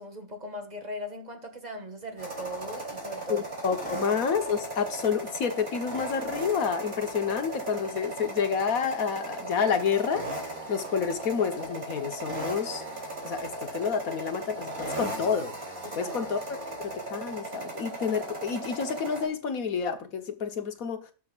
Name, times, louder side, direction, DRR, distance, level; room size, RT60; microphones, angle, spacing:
voice 1, 0.0-3.4 15.8-16.2, equal, 30° right, 2.0 m, -39 dB
sound 1, 2.2-19.3, right 2 dB, 45° right, 4.0 m, -37 dB
voice 2, 3.3-12.8 13.2-15.6 15.9-21.1, left 6 dB, 90° left, 1.7 m, -29 dB
19.5 x 6.5 x 2.5 m
omnidirectional pair, 1.4 m